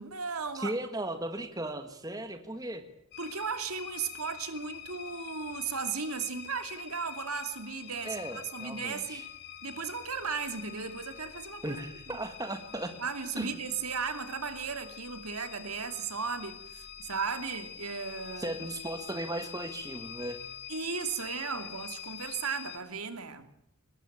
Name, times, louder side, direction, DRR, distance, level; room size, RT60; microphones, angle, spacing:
voice 1, 0.0-0.7 3.2-9.2 9.6-11.8 12.1-12.2 13.0-18.5 20.7-23.5, right 5 dB, 80° right, 2.6 m, -36 dB
voice 2, 0.5-2.8 8.0-9.3 11.6-12.9 13.4-13.5 18.4-20.4, right 1 dB, 15° right, 1.8 m, -36 dB
sound 1, 3.1-22.8, left 10 dB, 50° left, 2.1 m, -45 dB
23.0 x 20.0 x 8.7 m
head